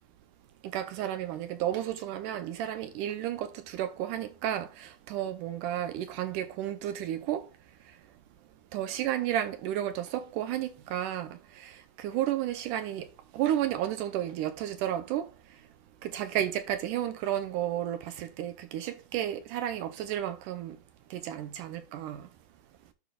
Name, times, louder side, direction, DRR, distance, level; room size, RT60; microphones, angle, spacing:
voice 1, 0.6-7.5 8.7-13.1 13.3-15.3 16.0-20.8 21.1-22.3, right 11 dB, 80° right, 2.1 m, -32 dB
12.0 x 5.2 x 2.3 m
omnidirectional pair, 3.9 m